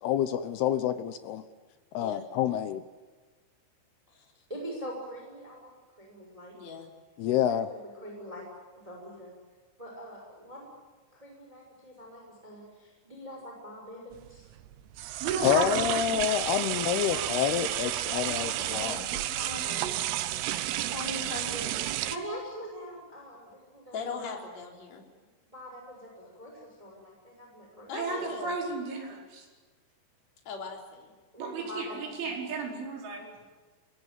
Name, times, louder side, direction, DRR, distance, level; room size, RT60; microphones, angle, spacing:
voice 1, 0.0-1.4 1.9-2.8 7.2-7.7 15.4-19.1, left 10 dB, 75° left, 12 dB, 2.4 m, -28 dB
voice 2, 4.5-5.7 6.0-6.5 7.5-8.4 8.7-9.3 9.8-10.6 11.1-14.5 22.0-24.4 25.5-28.3 31.3-32.3 32.7-32.8, equal, 5° right, -1 dB, 5.7 m, -44 dB
voice 3, 6.5-6.9 17.1-17.6 18.1-21.9 23.9-25.0 27.9-28.5 30.4-31.1, left 4 dB, 35° left, 1 dB, 4.7 m, -41 dB
sound 1, 14.1-22.2, right 14 dB, 90° right, 3.7 m, -31 dB
voice 4, 15.2-16.0 27.9-29.5 31.4-33.3, right 4 dB, 70° right, 1 dB, 7.3 m, -34 dB
25.5 x 21.5 x 9.2 m, 1.4 s
omnidirectional pair, 5.7 m